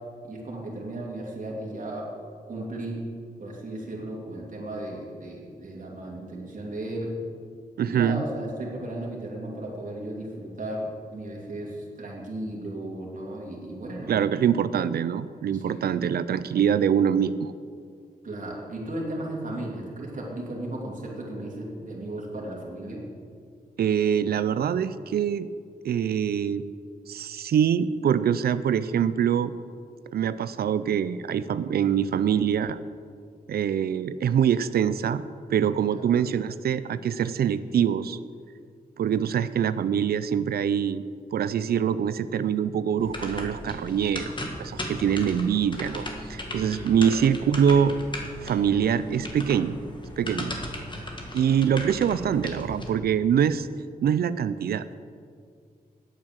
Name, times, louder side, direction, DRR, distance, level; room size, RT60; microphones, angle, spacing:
voice 1, 0.2-2.1 2.5-3.0 3.4-7.1 7.8-14.2 15.5-15.9 18.2-23.0 35.9-36.1 46.5-47.1 50.4-50.5, right 1 dB, 55° right, -3 dB, 2.7 m, -35 dB
voice 2, 7.8-8.2 14.1-17.5 23.8-25.5 25.8-26.6 27.1-29.5 30.1-32.8 33.5-35.2 35.5-38.2 39.0-41.0 41.3-48.0 48.4-49.8 50.2-50.5 51.3-53.7 54.0-54.9, right 8 dB, 90° right, 14 dB, 0.4 m, -24 dB
sound 1, 43.0-52.9, left 1 dB, 30° left, 1.9 m, -37 dB
8.9 x 8.6 x 7.5 m, 2.2 s
cardioid pair, 75°, 16 cm